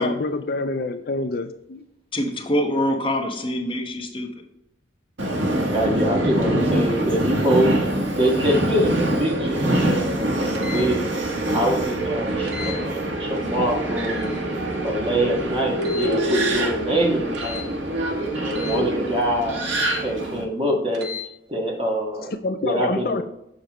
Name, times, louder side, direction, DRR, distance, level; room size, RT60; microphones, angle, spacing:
voice 1, 0.0-1.9 22.3-23.2, left 3 dB, 50° left, 8 dB, 0.4 m, -27 dB
voice 2, 2.1-4.4, left 1 dB, 25° left, 1 dB, 1.1 m, -25 dB
Subway metro underground, 5.2-20.4, right 1 dB, 85° right, 1.5 m, -24 dB
voice 3, 5.7-7.7 8.2-11.1 11.5-14.4 14.8-17.8 18.3-21.1 21.5-22.3 22.6-23.2, right 1 dB, 30° right, -1 dB, 1.6 m, -24 dB
sound 1, 10.5-10.9 12.5-12.8 14.0-14.3 15.8-16.2 17.3-17.7 18.5-18.8 19.7-20.0 20.9-21.2, left 5 dB, 70° right, 1.1 m, -35 dB
6.7 x 6.6 x 3.0 m, 0.82 s
head